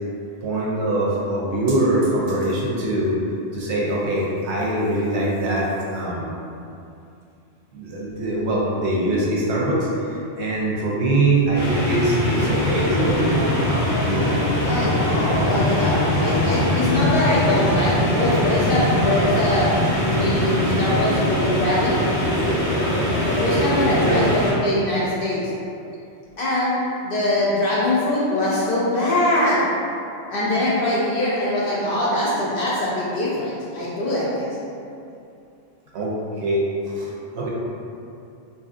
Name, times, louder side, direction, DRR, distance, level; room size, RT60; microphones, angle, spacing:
voice 1, 0.4-3.1 3.5-6.3 7.7-13.2 14.0-14.9 15.3-15.5 24.0-24.2 35.9-37.5, right 1 dB, 70° right, -5 dB, 0.8 m, -23 dB
sound 1, 11.5-24.5, left 1 dB, 20° left, 0.8 m, -21 dB
voice 2, 14.6-19.7 20.0-22.0 23.2-25.5 26.4-26.8 27.0-29.6 30.3-34.6, left 1 dB, 60° left, -7 dB, 0.7 m, -23 dB
2.8 x 2.5 x 2.4 m, 2.6 s
omnidirectional pair, 1.2 m